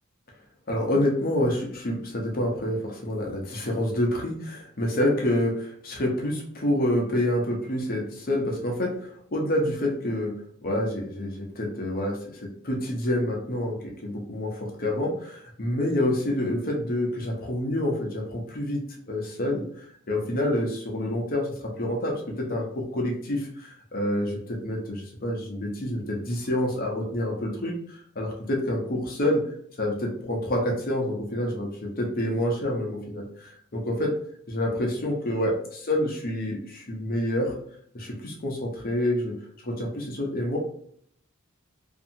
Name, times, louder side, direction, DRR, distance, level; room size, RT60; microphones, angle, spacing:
voice 1, 0.7-10.3 10.6-13.8 14.0-18.8 19.1-27.7 28.2-29.4 29.8-34.1 34.5-37.5 37.9-39.3 39.6-40.6, left 1 dB, 45° left, -1 dB, 0.7 m, -27 dB
2.7 x 2.6 x 2.6 m, 0.64 s
head